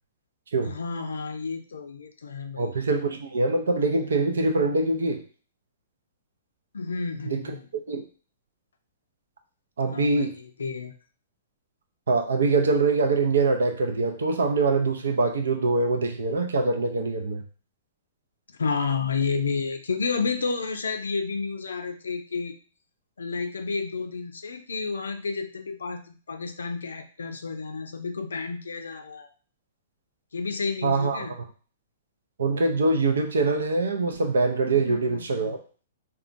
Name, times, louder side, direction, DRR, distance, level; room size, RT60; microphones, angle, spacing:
voice 1, 0.6-2.7 6.7-7.7 9.9-10.9 18.5-22.6 23.2-29.3 30.3-31.3 34.7-35.5, left 4 dB, 85° left, 6 dB, 0.5 m, -31 dB
voice 2, 2.6-5.2 7.3-7.4 7.7-8.0 9.8-10.4 12.1-17.4 30.8-31.3 32.4-35.6, right 3 dB, 80° right, 6 dB, 0.5 m, -24 dB
3.7 x 2.3 x 2.5 m, 0.39 s
hypercardioid pair, 120°, 0 cm